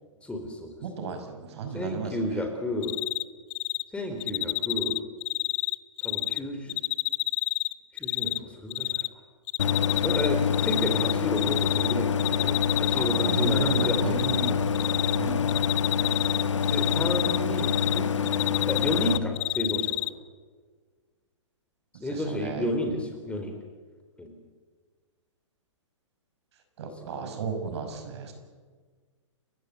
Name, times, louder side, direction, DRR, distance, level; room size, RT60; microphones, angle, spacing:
voice 1, 0.2-0.8 1.7-3.0 3.9-5.0 6.0-6.8 7.9-9.1 10.0-14.2 15.2-15.6 16.7-18.1 18.7-20.1 22.0-23.5 24.2-24.3, left 1 dB, 5° left, 4 dB, 3.8 m, -32 dB
voice 2, 0.8-2.1 9.9-10.0 12.9-14.8 15.1-15.4 16.6-16.9 22.1-22.7 26.8-28.3, right 5 dB, 55° right, 6 dB, 5.8 m, -34 dB
Cricket, 2.8-3.2 3.5-3.8 4.2-6.4 6.7-8.4 8.7-9.1 9.5-10.3 10.5-11.9 12.2-14.5 14.8-15.2 15.5-18.0 18.3-20.1, left 24 dB, 35° left, 0.7 m, -28 dB
Idling, 9.6-19.2, left 6 dB, 70° left, 1.6 m, -26 dB
30.0 x 16.0 x 9.0 m, 1.5 s
hypercardioid pair, 125°, 16 cm